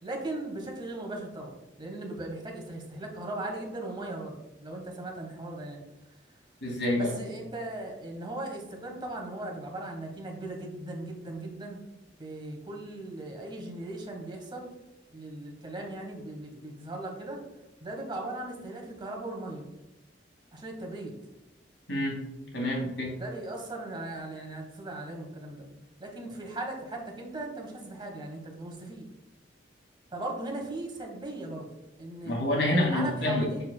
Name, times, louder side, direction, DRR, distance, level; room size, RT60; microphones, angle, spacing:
voice 1, 0.0-5.8 7.0-11.8 12.2-14.7 15.1-17.4 17.8-19.7 20.5-21.2 23.2-25.7 26.0-29.1 30.1-31.7 32.0-32.3 32.7-33.6, right 2 dB, 25° right, 1 dB, 1.3 m, -38 dB
voice 2, 6.6-7.1 21.9-22.2 22.5-23.1 32.2-33.5, left 1 dB, 90° left, -2 dB, 2.3 m, -27 dB
6.7 x 6.6 x 2.3 m, 0.94 s
head